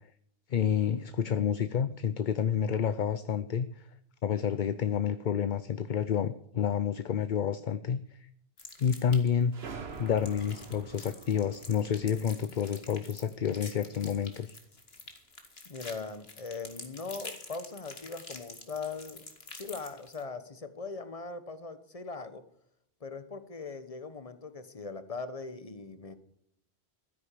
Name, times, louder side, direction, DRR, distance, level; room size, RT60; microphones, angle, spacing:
voice 1, 0.5-3.9 4.2-8.2 8.8-9.5 10.0-14.6, left 8 dB, 55° left, 13 dB, 0.7 m, -29 dB
sound 1, 8.6-9.4 9.9-20.2, left 3 dB, 70° left, 2.3 m, -47 dB
sound 2, 9.5-14.0, right 5 dB, 75° right, 1.6 m, -47 dB
voice 2, 15.6-19.2 19.5-22.4 23.0-26.1, left 4 dB, 35° left, 11 dB, 1.2 m, -40 dB
13.5 x 10.0 x 6.7 m, 0.73 s
omnidirectional pair, 1.1 m